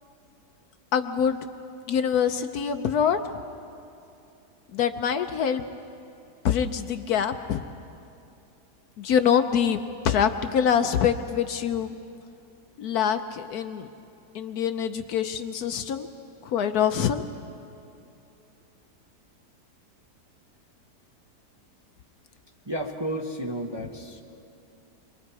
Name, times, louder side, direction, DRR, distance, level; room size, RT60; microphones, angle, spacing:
voice 1, 0.9-1.5 1.9-3.2 4.7-5.7 6.4-7.6 9.0-11.9 12.8-13.9 14.3-16.1 16.4-17.2, left 8 dB, 65° left, 8 dB, 1.1 m, -25 dB
voice 2, 22.7-24.2, right 1 dB, 20° right, 0 dB, 0.9 m, -32 dB
27.5 x 22.5 x 4.8 m, 2.7 s
omnidirectional pair, 1.9 m